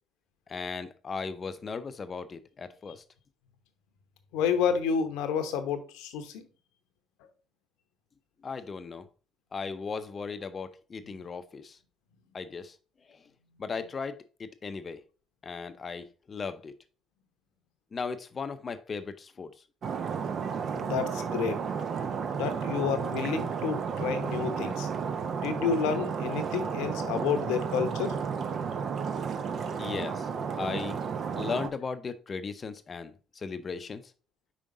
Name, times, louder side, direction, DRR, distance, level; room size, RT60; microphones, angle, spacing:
voice 1, 0.5-3.0 8.4-9.1 9.5-11.8 12.3-12.8 13.0-13.3 13.6-15.0 15.4-16.8 17.9-19.6 29.8-31.0 31.3-34.1, left 5 dB, 40° left, 0.6 m, -37 dB
voice 2, 4.3-6.4 20.7-21.6 22.3-24.9 25.4-28.1, left 7 dB, 75° left, 0.9 m, -30 dB
Stream, 19.8-31.7, right 6 dB, 55° right, 0.8 m, -32 dB
5.3 x 5.0 x 3.7 m
hypercardioid pair, 60°, 0 cm